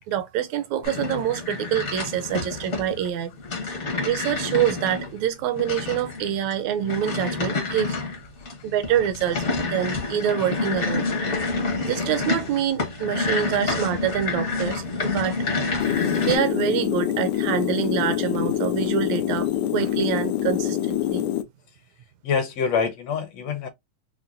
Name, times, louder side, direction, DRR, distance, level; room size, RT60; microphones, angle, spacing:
voice 1, 0.0-3.3 3.7-3.8 4.1-8.0 8.6-11.1 11.8-15.4 16.2-21.2, right 10 dB, 80° right, 1.8 m, -26 dB
sound 1, 0.8-16.4, left 3 dB, 60° left, 0.7 m, -28 dB
voice 2, 3.4-3.8 7.6-7.8 8.4-8.5 22.2-23.7, left 6 dB, 75° left, 1.7 m, -27 dB
sound 2, 15.8-21.4, left 12 dB, 90° left, 2.0 m, -25 dB
5.7 x 2.2 x 2.4 m
omnidirectional pair, 3.3 m